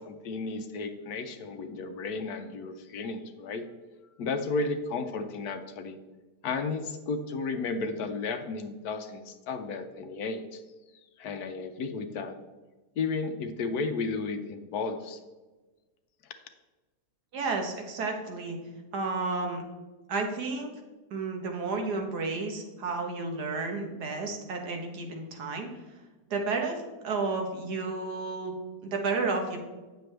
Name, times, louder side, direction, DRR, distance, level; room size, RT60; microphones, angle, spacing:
voice 1, 0.0-3.6 4.2-6.0 6.4-10.6 11.2-12.4 13.0-15.2, left 4 dB, 70° left, 8 dB, 1.1 m, -33 dB
voice 2, 17.3-18.6 18.9-19.6 20.1-20.7 21.1-25.7 26.3-28.5 28.8-29.6, right 3 dB, 75° right, 3 dB, 1.7 m, -32 dB
9.1 x 6.8 x 3.3 m, 1.2 s
omnidirectional pair, 1.8 m